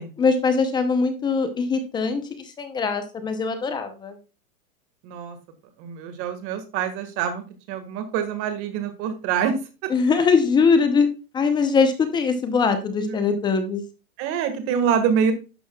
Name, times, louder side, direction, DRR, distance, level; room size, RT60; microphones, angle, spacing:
voice 1, 0.2-2.2 2.6-4.2 9.9-11.1 11.3-13.8, left 5 dB, 10° left, 9 dB, 0.7 m, -21 dB
voice 2, 5.0-5.4 5.8-9.5 13.1-13.3 14.2-15.3, right 7 dB, 30° right, 8 dB, 1.7 m, -25 dB
11.5 x 6.2 x 2.3 m, 0.32 s
hypercardioid pair, 150°, 43 cm